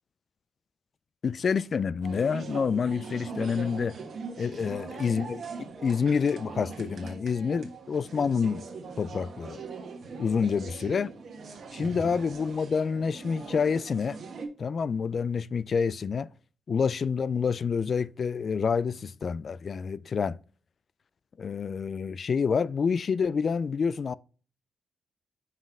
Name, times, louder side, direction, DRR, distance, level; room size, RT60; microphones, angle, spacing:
voice 1, 1.2-4.0 4.4-8.7 9.0-9.6 10.2-11.1 11.7-14.2 14.6-16.3 16.7-20.4 21.4-24.1, left 6 dB, 55° left, 0.3 m, -28 dB
sound 1, 2.0-14.5, right 4 dB, 65° right, 1.5 m, -41 dB
5.7 x 5.2 x 3.5 m
cardioid pair, 70°, 0 cm